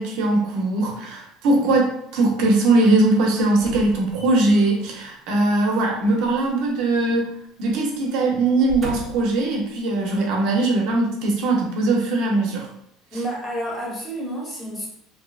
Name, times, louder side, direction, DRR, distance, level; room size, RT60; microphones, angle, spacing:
voice 1, 0.0-7.3 7.6-12.7 13.1-13.2, right 2 dB, 70° right, 0 dB, 0.6 m, -20 dB
sound 1, 3.6-4.7 6.2-7.4 7.7-7.9 8.5-9.4 10.1-10.2, right 1 dB, 30° right, 0.5 m, -37 dB
voice 2, 13.1-14.9, right 1 dB, 20° left, -3 dB, 1.0 m, -29 dB
2.7 x 2.1 x 2.3 m, 0.74 s
supercardioid pair, 115°, 0 cm